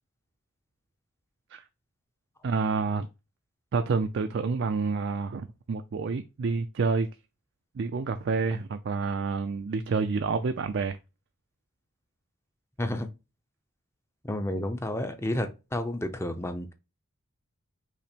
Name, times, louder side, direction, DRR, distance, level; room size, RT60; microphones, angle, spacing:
voice 1, 2.4-3.1 3.7-7.1 7.8-11.0, right 4 dB, 50° right, 0.3 m, -28 dB
voice 2, 12.8-13.1 14.2-16.7, left 1 dB, 10° left, 0.5 m, -31 dB
5.7 x 2.0 x 4.3 m
head